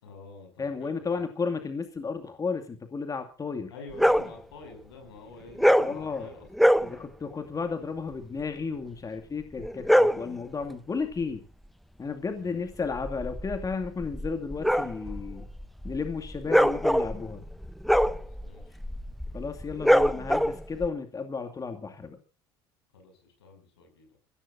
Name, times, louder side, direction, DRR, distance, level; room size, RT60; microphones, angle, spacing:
voice 1, 0.0-1.2 3.7-6.8 12.3-12.6 18.1-18.8 22.9-24.2, left 3 dB, 80° left, 4 dB, 6.8 m, -48 dB
voice 2, 0.6-3.7 5.8-6.3 6.8-11.5 12.0-15.5 15.8-17.4 19.3-22.2, left 5 dB, 25° left, 6 dB, 2.4 m, -33 dB
sound 1, 3.9-4.3 5.6-6.0 6.5-6.9 9.6-10.3 12.8-20.9, equal, ahead, 0.8 m, -24 dB
25.0 x 16.0 x 2.7 m, 0.34 s
hypercardioid pair, 65°, 13 cm